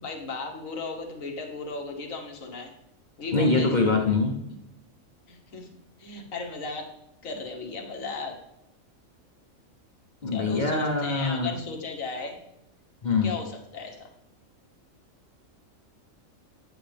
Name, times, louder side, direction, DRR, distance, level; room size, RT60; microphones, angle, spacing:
voice 1, 0.0-2.7 3.2-4.0 5.3-5.7 6.0-6.9 7.2-8.4 10.3-12.4 13.2-14.1, left 4 dB, 75° left, 4 dB, 1.7 m, -36 dB
voice 2, 3.3-4.4 10.2-11.6 13.0-13.3, left 3 dB, 35° left, 1 dB, 1.0 m, -24 dB
9.1 x 8.0 x 3.4 m, 0.81 s
omnidirectional pair, 1.4 m